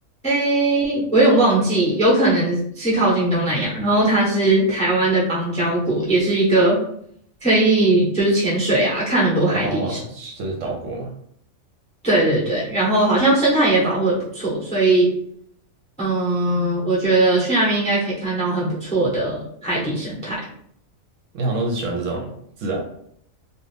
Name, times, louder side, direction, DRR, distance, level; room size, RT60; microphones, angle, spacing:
voice 1, 0.2-6.8 7.4-10.0 12.0-15.1 16.0-20.4, right 2 dB, 5° left, -5 dB, 0.6 m, -19 dB
voice 2, 9.5-11.1 21.3-22.3 22.6-22.8, right 2 dB, 70° right, 1 dB, 0.9 m, -27 dB
2.4 x 2.4 x 3.3 m, 0.67 s
omnidirectional pair, 1.4 m